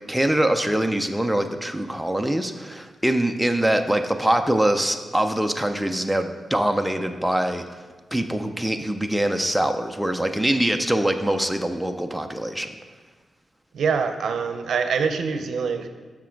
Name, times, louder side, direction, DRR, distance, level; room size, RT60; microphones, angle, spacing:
voice 1, 0.1-7.8 8.1-12.7, right 1 dB, 5° right, 5 dB, 0.4 m, -23 dB
voice 2, 13.7-15.9, right 5 dB, 75° right, 7 dB, 0.6 m, -24 dB
7.3 x 5.8 x 4.5 m, 1.4 s
wide cardioid pair, 140°, 0 cm